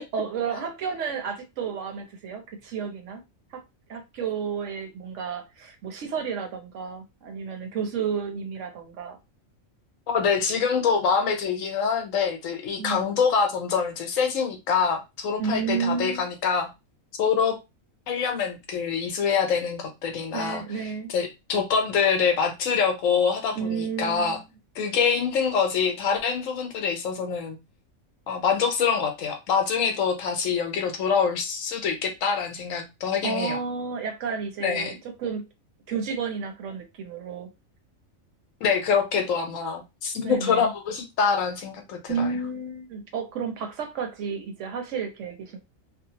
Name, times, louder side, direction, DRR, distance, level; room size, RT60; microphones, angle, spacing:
voice 1, 0.1-3.2 3.5-3.6 3.9-9.2 12.8-13.0 15.4-16.3 20.3-21.1 23.6-24.5 33.2-35.5 35.9-37.5 40.2-40.7 42.1-45.6, right 6 dB, 70° right, 0.9 m, -31 dB
voice 2, 10.1-16.7 17.2-17.6 18.1-24.4 24.8-27.6 28.3-33.6 34.6-34.9 38.6-42.3, left 6 dB, 75° left, 1.1 m, -25 dB
2.7 x 2.0 x 2.8 m
omnidirectional pair, 1.4 m